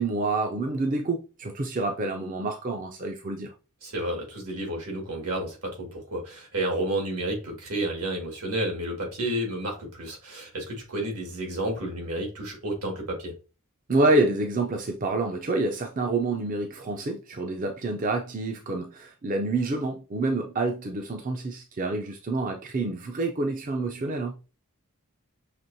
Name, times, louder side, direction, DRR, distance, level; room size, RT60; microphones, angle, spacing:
voice 1, 0.0-3.5 13.9-24.4, right 2 dB, 35° right, 0.4 m, -27 dB
voice 2, 3.8-13.3, right 1 dB, 85° right, 1.9 m, -31 dB
5.9 x 3.0 x 2.7 m
head